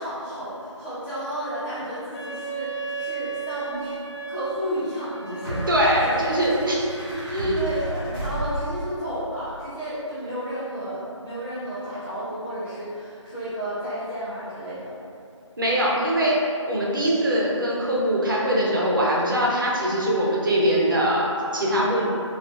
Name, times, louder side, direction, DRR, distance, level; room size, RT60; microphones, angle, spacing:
voice 1, 0.0-3.9 4.3-6.2 7.5-14.9, equal, 25° left, -17 dB, 0.6 m, -32 dB
Wind instrument woodwind instrument, 2.1-7.2, right 6 dB, 60° left, 1.0 m, -35 dB
sound 1, 3.7-3.8 5.4-9.0, right 1 dB, 5° right, 0.9 m, -32 dB
voice 2, 5.7-6.8 7.3-7.6 15.6-16.4 16.6-22.1, equal, 40° right, -4 dB, 0.4 m, -22 dB
2.2 x 2.2 x 2.5 m, 2.5 s
figure-of-eight pair, 175°, 16 cm